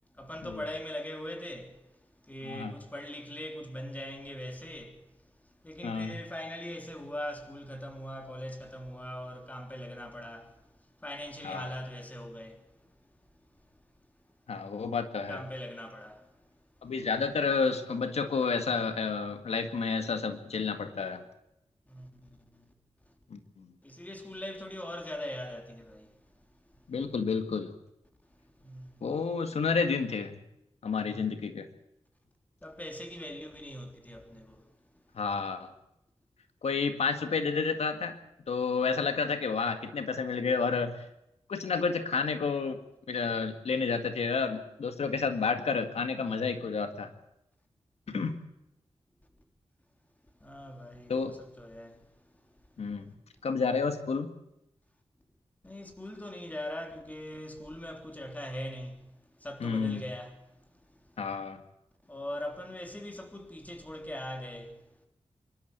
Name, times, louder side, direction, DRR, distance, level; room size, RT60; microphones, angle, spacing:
voice 1, 0.1-5.3 5.6-13.0 13.5-13.7 14.7-14.9 15.3-16.9 21.9-22.7 23.1-23.2 23.8-26.2 26.7-26.8 28.3-29.1 30.9-31.3 32.6-34.8 48.1-48.3 50.4-52.5 52.9-53.0 55.6-61.3 62.0-64.9, left 1 dB, 15° left, 3.5 m, -42 dB
voice 2, 2.4-2.7 5.8-6.2 11.4-11.7 14.5-15.4 16.8-21.2 23.3-23.7 26.9-27.7 29.0-30.3 30.8-31.7 35.2-35.7 36.6-38.2 38.5-40.9 41.5-42.8 43.1-47.1 48.1-48.3 51.1-51.3 52.8-53.1 53.4-54.3 59.6-60.0 61.2-61.6, left 5 dB, 85° left, 2.0 m, -30 dB
25.5 x 12.5 x 8.1 m
wide cardioid pair, 130°, 11 cm